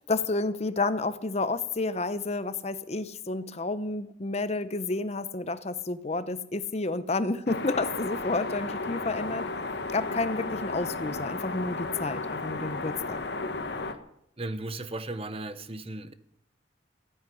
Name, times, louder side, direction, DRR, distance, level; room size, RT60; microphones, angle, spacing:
voice 1, 0.0-9.5 9.9-13.2, left 3 dB, 35° left, 13 dB, 0.8 m, -30 dB
sound 1, 7.5-13.9, left 3 dB, 60° left, 1.3 m, -34 dB
voice 2, 14.4-16.1, right 2 dB, 30° right, 12 dB, 0.9 m, -36 dB
15.0 x 9.6 x 9.8 m, 0.75 s
head